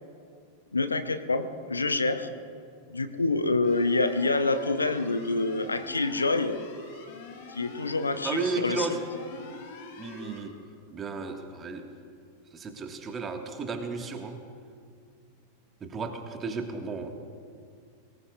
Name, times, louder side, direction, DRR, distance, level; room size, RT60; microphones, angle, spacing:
voice 1, 0.7-2.3 2.9-6.6 7.5-8.9, left 3 dB, 80° left, 9 dB, 0.8 m, -27 dB
sound 1, 3.6-10.4, left 3 dB, 50° left, 2.7 m, -45 dB
voice 2, 8.2-9.1 10.0-10.6 10.9-11.9 12.5-14.4 15.8-17.1, right 4 dB, 20° right, 5 dB, 1.6 m, -33 dB
23.0 x 18.5 x 2.4 m, 2.2 s
figure-of-eight pair, 90°, 0 cm